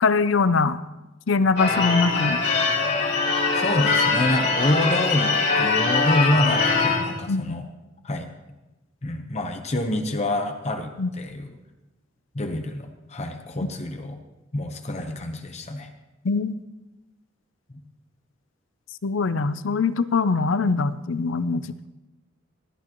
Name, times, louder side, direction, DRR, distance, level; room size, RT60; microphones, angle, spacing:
voice 1, 0.0-0.8 1.3-2.4 7.3-7.6 11.0-11.1 16.2-16.5 19.0-21.9, left 4 dB, 80° left, 14 dB, 0.6 m, -22 dB
Church bell / Car / Alarm, 1.6-7.1, left 4 dB, 60° left, 3.2 m, -22 dB
voice 2, 3.5-7.7 8.0-8.3 9.0-11.6 12.3-14.2 14.5-15.9, left 1 dB, 35° left, 5 dB, 0.9 m, -27 dB
19.0 x 12.0 x 3.0 m, 1.0 s
head